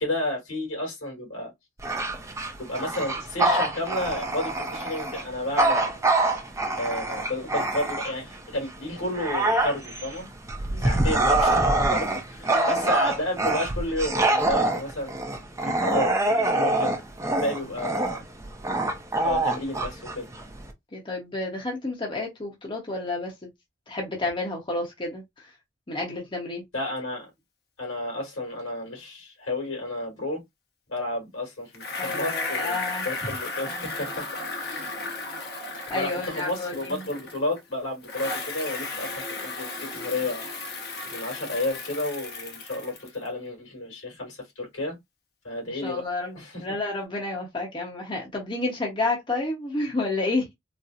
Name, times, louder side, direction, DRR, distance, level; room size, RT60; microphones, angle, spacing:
voice 1, 0.0-1.5 2.6-5.9 6.8-10.3 10.8-15.1 15.6-16.9 17.2-18.2 19.2-20.3 26.7-27.3 27.8-30.4 30.9-34.3 34.6-34.9 35.9-40.5 41.1-45.0 45.4-46.0 46.3-46.6, left 1 dB, 85° left, 2.4 m, -31 dB
Bark / Growling, 1.8-8.3 8.8-20.7, right 2 dB, 15° right, 0.6 m, -25 dB
voice 2, 12.5-12.9 20.9-23.3 23.9-25.5 25.9-26.6 31.9-33.1 35.9-37.0 45.7-50.5, left 2 dB, 25° left, 0.8 m, -30 dB
Bicycle, 31.7-37.6 38.0-43.3, left 3 dB, 55° left, 0.9 m, -35 dB
4.1 x 2.1 x 2.4 m
head